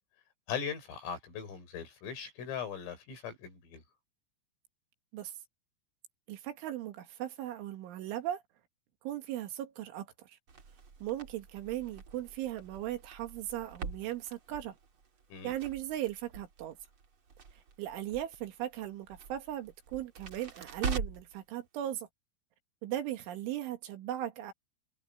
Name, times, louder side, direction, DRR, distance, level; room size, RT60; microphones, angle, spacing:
voice 1, 0.5-3.8 15.3-15.5, left 7 dB, 85° left, 8.6 m, -39 dB
voice 2, 6.3-8.4 9.0-10.4 11.0-14.8 15.4-16.8 17.8-22.1 22.8-24.5, right 13 dB, 75° right, 4.1 m, -38 dB
Crackle, 10.5-21.4, right 5 dB, 35° right, 2.4 m, -44 dB
omnidirectional pair, 5.7 m